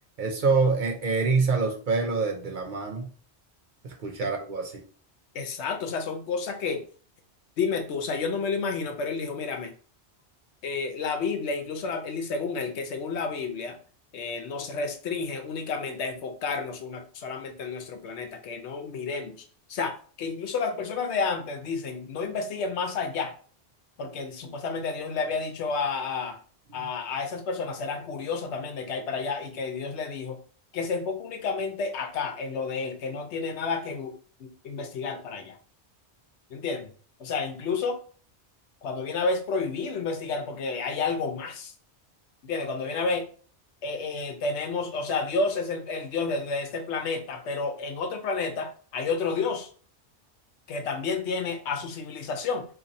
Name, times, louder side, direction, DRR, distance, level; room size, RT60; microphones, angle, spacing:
voice 1, 0.2-3.1 3.8-4.8, right 4 dB, 55° right, 1 dB, 0.7 m, -26 dB
voice 2, 5.3-6.8 7.6-9.7 10.6-13.8 14.1-23.3 24.0-26.4 26.7-30.4 30.7-35.6 36.5-36.9 37.2-38.0 38.8-41.7 42.4-43.2 43.8-49.7 50.7-52.7, left 4 dB, 85° left, 6 dB, 1.0 m, -30 dB
2.8 x 2.6 x 4.0 m, 0.43 s
omnidirectional pair, 1.1 m